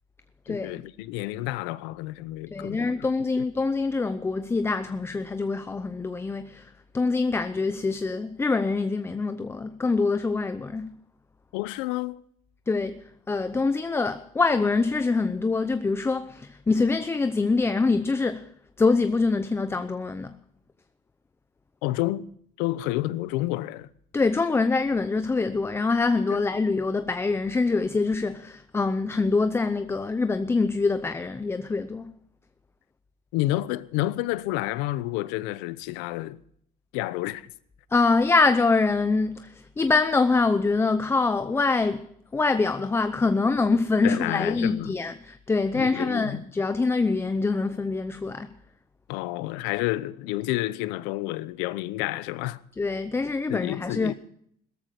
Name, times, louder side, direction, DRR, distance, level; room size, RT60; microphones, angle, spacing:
voice 1, 0.5-2.9 11.5-12.2 21.8-22.2 22.6-23.9 26.3-26.4 33.3-36.4 36.9-37.5 44.0-45.0 45.7-46.4 49.1-52.6 53.5-54.1, left 17 dB, 80° left, 0.9 m, -29 dB
voice 2, 2.5-11.0 12.7-18.5 18.8-20.3 24.1-32.1 37.9-42.1 42.3-48.5 52.8-54.1, left 3 dB, 15° left, 0.7 m, -25 dB
17.0 x 14.0 x 4.9 m
cardioid pair, 125°, 18 cm